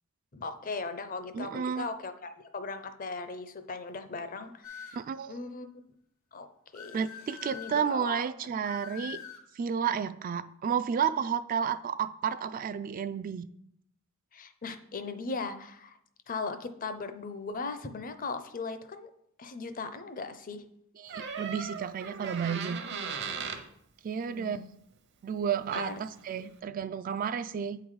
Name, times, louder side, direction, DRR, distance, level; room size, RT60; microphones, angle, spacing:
voice 1, 0.3-5.0 5.3-5.7 6.3-6.5 6.7-7.0 7.5-8.2 8.5-8.6 14.3-16.0 16.3-19.1 19.4-20.6 24.3-24.7 25.7-25.9, left 4 dB, 40° left, 9 dB, 0.6 m, -38 dB
voice 2, 1.3-1.9 4.9-5.3 6.9-9.2 9.6-13.4 21.0-22.8 24.0-24.6 25.2-27.8, right 7 dB, 40° right, 12 dB, 0.3 m, -31 dB
sound 1, 4.6-5.1 6.7-8.0 8.6-9.5, left 7 dB, 75° left, 1.0 m, -45 dB
Door, 21.1-23.7 25.4-25.5 25.7-26.1, right 5 dB, 55° right, 0.8 m, -37 dB
8.5 x 3.9 x 4.7 m, 0.73 s
head